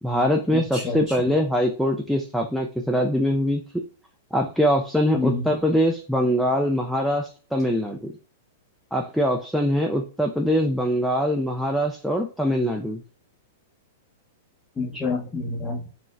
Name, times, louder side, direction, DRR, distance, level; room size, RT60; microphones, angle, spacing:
voice 1, 0.0-3.6 4.3-8.1 8.9-13.0, equal, ahead, 1 dB, 0.4 m, -23 dB
voice 2, 0.5-1.2 5.1-5.4 14.8-15.8, left 3 dB, 15° left, -7 dB, 0.9 m, -28 dB
3.8 x 2.1 x 2.4 m, 0.37 s
hypercardioid pair, 120°, 0 cm